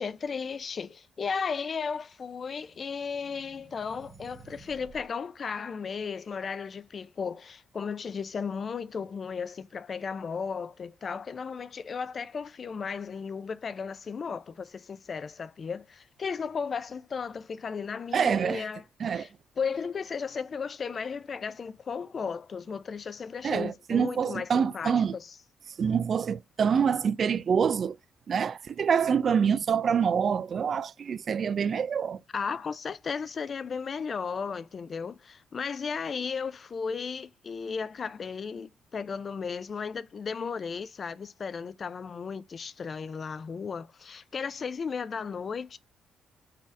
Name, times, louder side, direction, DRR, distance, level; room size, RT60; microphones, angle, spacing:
voice 1, 0.0-18.8 19.1-19.3 19.6-25.3 32.3-45.8, left 5 dB, 45° left, 0.4 m, -35 dB
sound 1, 2.1-5.1, right 5 dB, 35° right, 0.9 m, -54 dB
voice 2, 18.1-18.6 19.0-19.3 23.4-25.2 25.8-28.0 28.3-32.2, right 7 dB, 50° right, 0.3 m, -26 dB
4.1 x 2.7 x 4.8 m
cardioid pair, 90°, 0 cm